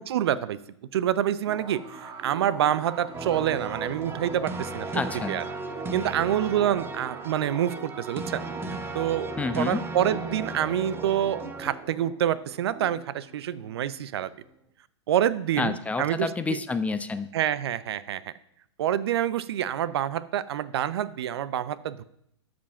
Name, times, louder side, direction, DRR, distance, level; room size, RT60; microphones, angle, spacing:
voice 1, 0.1-0.6 0.9-4.9 5.3-5.4 5.9-8.4 8.9-9.3 9.5-14.3 15.1-16.6 17.3-18.3 18.8-22.0, right 11 dB, 60° right, 18 dB, 0.6 m, -27 dB
sound 1, 1.5-14.7, right 3 dB, 30° right, 1.9 m, -42 dB
sound 2, 3.1-11.7, right 3 dB, 15° right, 0.8 m, -36 dB
voice 2, 4.9-5.4 9.4-9.8 15.6-17.3, left 4 dB, 10° left, 11 dB, 0.5 m, -29 dB
12.5 x 5.1 x 5.9 m, 0.74 s
figure-of-eight pair, 110°, 15 cm